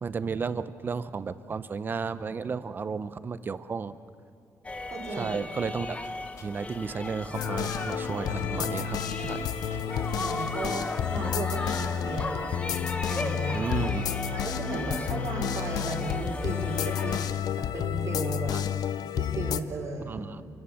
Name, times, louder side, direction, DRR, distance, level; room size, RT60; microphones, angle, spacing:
voice 1, 0.0-4.0 5.2-6.0 6.4-9.5 13.5-14.1 18.5-18.6 20.0-20.4, right 5 dB, 30° right, 14 dB, 0.7 m, -33 dB
sound 1, 4.6-17.3, left 3 dB, 20° left, 1.0 m, -36 dB
voice 2, 4.9-5.3 10.0-12.6 13.1-13.9 14.3-18.5 19.2-20.2, right 3 dB, 55° right, -5 dB, 3.2 m, -36 dB
sound 2, 6.0-6.8 7.0-7.1 7.4-8.8 9.0-9.4 9.7-10.5, left 5 dB, 50° left, 2.1 m, -52 dB
sound 3, 7.3-19.6, left 9 dB, 85° left, 0.7 m, -31 dB
28.0 x 17.0 x 7.1 m, 2.5 s
wide cardioid pair, 175°, 6 cm